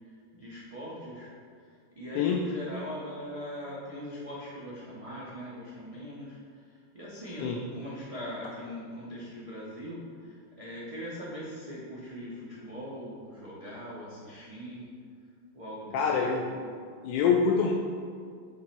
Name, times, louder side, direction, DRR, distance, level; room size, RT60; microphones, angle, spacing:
voice 1, 0.3-1.3 2.0-14.9 15.5-16.2 16.6-16.7, equal, 30° right, -7 dB, 0.7 m, -41 dB
voice 2, 15.9-16.6 17.0-17.7, left 6 dB, 75° left, 0 dB, 1.2 m, -25 dB
8.4 x 3.1 x 4.4 m, 2.1 s
omnidirectional pair, 2.1 m